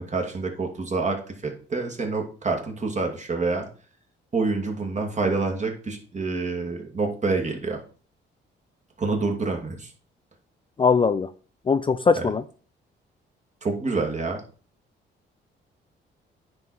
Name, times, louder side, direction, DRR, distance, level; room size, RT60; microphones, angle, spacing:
voice 1, 0.0-3.7 4.3-7.8 9.0-9.9 12.2-12.3 13.6-14.4, right 3 dB, 35° right, 2.4 m, -27 dB
voice 2, 10.8-11.3 11.7-12.4, left 5 dB, 25° left, 0.4 m, -20 dB
9.6 x 4.9 x 4.4 m
cardioid pair, 90°, 20 cm